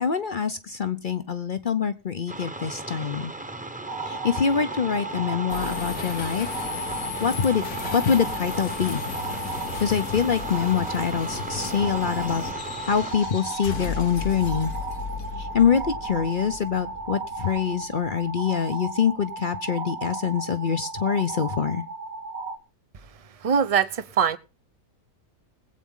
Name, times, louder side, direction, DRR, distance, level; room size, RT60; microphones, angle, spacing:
voice 1, 0.0-3.3 4.0-6.5 7.2-7.7 7.9-9.0 9.8-12.4 12.8-14.7 15.4-21.8, left 7 dB, 45° left, 0.7 m, -25 dB
sound 1, 2.3-13.1, right 2 dB, 5° right, 0.9 m, -37 dB
sound 2, 3.9-22.6, right 3 dB, 70° right, 1.7 m, -35 dB
sound 3, 5.5-18.9, left 6 dB, 75° left, 1.6 m, -35 dB
voice 2, 23.4-24.4, right 7 dB, 40° right, 0.5 m, -22 dB
21.0 x 8.4 x 3.7 m
omnidirectional pair, 1.6 m